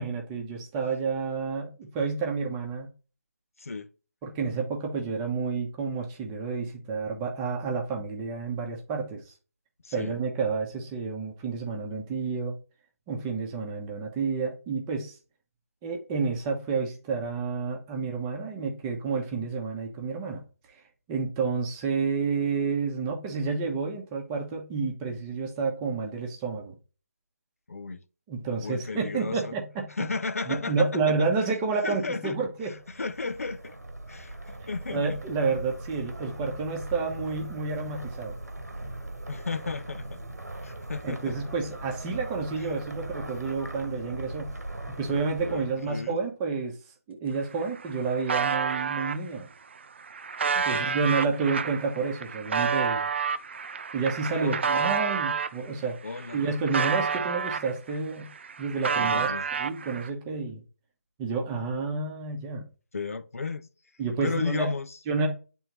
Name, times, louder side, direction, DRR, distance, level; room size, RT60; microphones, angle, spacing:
voice 1, 0.0-2.9 4.2-9.2 9.9-12.5 13.1-15.2 15.8-20.4 20.7-20.8 21.1-26.7 28.3-29.9 30.5-32.7 34.9-38.3 41.0-44.5 44.9-46.8 47.1-49.5 50.7-53.1 53.9-56.0 56.3-58.3 58.6-59.3 59.6-60.6 61.2-62.7 64.0-64.7 65.1-65.3, right 4 dB, 15° right, 0.9 m, -30 dB
voice 2, 3.6-3.9 9.8-10.2 27.7-28.0 28.6-29.6 29.9-31.2 31.8-32.4 32.6-33.8 34.1-35.2 39.3-40.3 40.6-41.4 42.6-42.7 45.4-46.2 50.5-50.9 54.2-54.7 56.0-56.4 59.0-59.4 62.9-63.7 64.2-65.0, left 4 dB, 65° left, 0.6 m, -34 dB
sound 1, 32.6-46.1, right 1 dB, 90° right, 1.2 m, -39 dB
sound 2, 47.3-47.4 47.6-49.2 49.8-55.6 56.0-58.0 58.3-60.1, right 6 dB, 45° right, 0.4 m, -29 dB
8.8 x 3.6 x 3.0 m
figure-of-eight pair, 150°, 9 cm